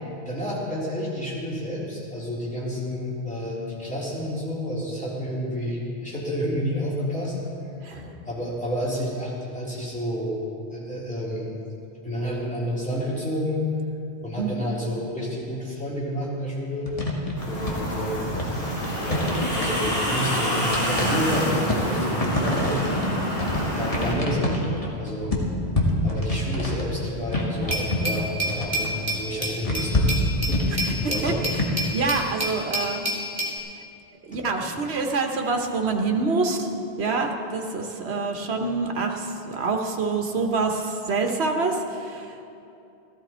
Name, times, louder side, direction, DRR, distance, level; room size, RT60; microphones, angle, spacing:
voice 1, 0.3-7.4 7.9-10.4 10.7-11.4 12.0-13.6 14.2-16.9 17.5-18.4 19.0-19.3 19.5-23.0 23.8-25.3 26.0-28.9 29.2-30.1 30.5-30.6 31.0-31.5, equal, 5° left, -7 dB, 3.4 m, -30 dB
sound 1, 16.9-31.6, left 1 dB, 35° left, 1.8 m, -27 dB
sound 2, 17.4-24.1, equal, 75° left, 4.3 m, -27 dB
Glass, 27.7-33.6, equal, 15° right, 2.5 m, -29 dB
voice 2, 31.2-31.7 31.9-33.0 34.2-36.7 37.0-42.4, right 3 dB, 75° right, 3 dB, 1.4 m, -26 dB
15.0 x 14.5 x 4.4 m, 2.6 s
omnidirectional pair, 1.1 m